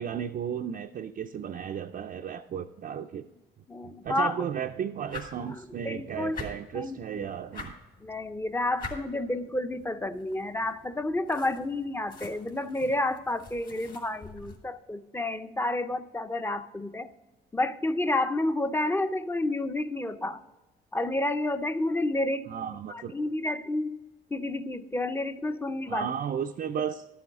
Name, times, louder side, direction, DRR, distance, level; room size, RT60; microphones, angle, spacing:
voice 1, 0.0-3.2 3.8-7.7 22.5-23.1 25.9-27.1, right 8 dB, 45° right, 3 dB, 0.5 m, -34 dB
voice 2, 3.7-4.4 5.5-5.6 5.9-6.4 6.7-7.2 8.0-17.1 17.5-20.4 20.9-22.5 22.9-24.0 24.3-26.1, left 2 dB, 10° left, 11 dB, 0.6 m, -30 dB
sound 1, 5.0-14.6, left 3 dB, 45° left, 2.3 m, -46 dB
12.0 x 7.8 x 3.6 m, 1.1 s
cardioid pair, 90°, 20 cm